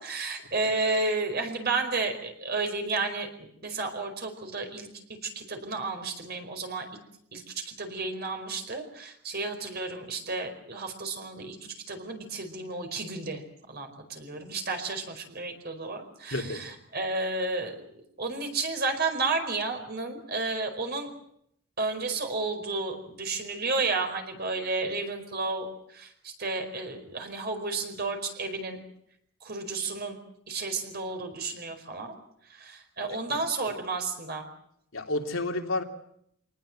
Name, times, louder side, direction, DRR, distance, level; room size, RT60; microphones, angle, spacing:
voice 1, 0.0-6.8 7.3-11.6 11.9-17.7 18.2-21.1 21.8-28.8 29.4-30.2 30.5-32.2 32.5-34.5, right 3 dB, 50° right, 5 dB, 4.8 m, -32 dB
voice 2, 16.3-16.6 33.1-33.4 34.9-35.8, left 2 dB, 80° left, 2 dB, 3.0 m, -31 dB
25.5 x 19.0 x 7.7 m, 0.73 s
head